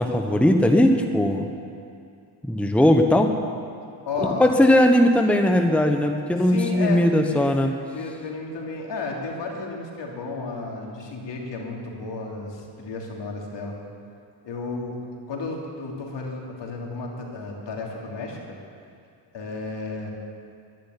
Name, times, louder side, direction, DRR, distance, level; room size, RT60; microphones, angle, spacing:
voice 1, 0.0-1.5 2.4-3.3 4.2-7.7, left 1 dB, 5° left, 4 dB, 1.1 m, -19 dB
voice 2, 4.0-4.5 6.4-7.5 7.9-13.8 14.4-15.0 15.3-18.6 19.3-20.1, left 3 dB, 60° left, -1 dB, 3.2 m, -32 dB
12.0 x 10.5 x 9.9 m, 2.5 s
cardioid pair, 85°, 47 cm